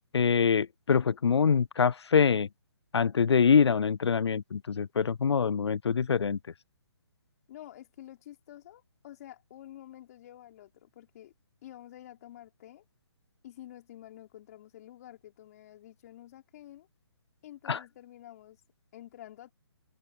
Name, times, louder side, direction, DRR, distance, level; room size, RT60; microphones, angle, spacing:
voice 1, 0.1-2.5 2.9-6.4 17.7-17.8, left 6 dB, 85° left, 0.4 m, -24 dB
voice 2, 7.5-11.3 11.6-12.8 13.4-16.9 17.4-18.6 18.9-19.5, left 13 dB, 40° left, 3.7 m, -49 dB
figure-of-eight pair, 145°, 14 cm